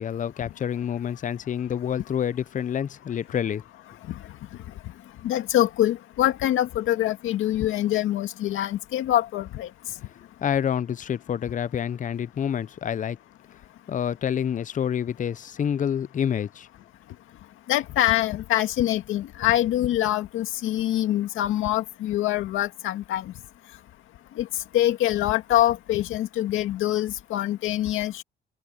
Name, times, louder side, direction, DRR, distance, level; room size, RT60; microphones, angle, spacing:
voice 1, 0.0-3.6 10.4-13.2 13.9-16.7, left 8 dB, 40° left, 0.6 m, -28 dB
voice 2, 5.2-9.7 17.7-23.2 24.4-24.5 24.7-28.2, left 13 dB, 85° left, 2.1 m, -24 dB
cardioid pair, 90°, 20 cm